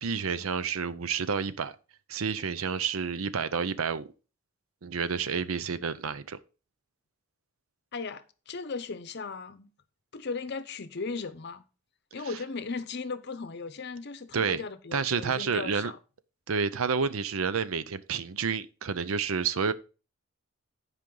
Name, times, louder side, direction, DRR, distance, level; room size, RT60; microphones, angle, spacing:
voice 1, 0.0-1.7 2.1-4.1 4.8-6.4 14.3-14.6 14.9-15.9 16.5-19.7, right 6 dB, 85° right, 0.6 m, -29 dB
voice 2, 7.9-9.7 10.1-11.6 12.1-16.0, left 4 dB, 55° left, 0.7 m, -37 dB
10.5 x 5.1 x 3.8 m
head